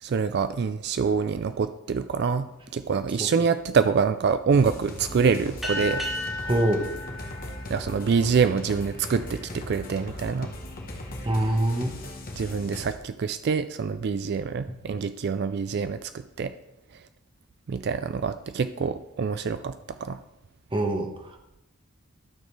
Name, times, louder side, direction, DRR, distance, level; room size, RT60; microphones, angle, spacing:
voice 1, 0.0-2.5 2.7-6.0 7.7-10.5 12.4-16.1 16.4-16.5 17.7-19.7 20.0-20.2, right 5 dB, 50° right, 11 dB, 0.3 m, -25 dB
sound 1, 4.5-13.0, left 1 dB, 40° left, 1.2 m, -38 dB
sound 2, 5.6-8.6, left 1 dB, ahead, 1.9 m, -34 dB
voice 2, 6.4-6.9 11.2-12.0 14.7-14.8 20.7-21.3, right 1 dB, 25° right, 4 dB, 1.0 m, -25 dB
12.0 x 6.4 x 3.3 m, 0.89 s
head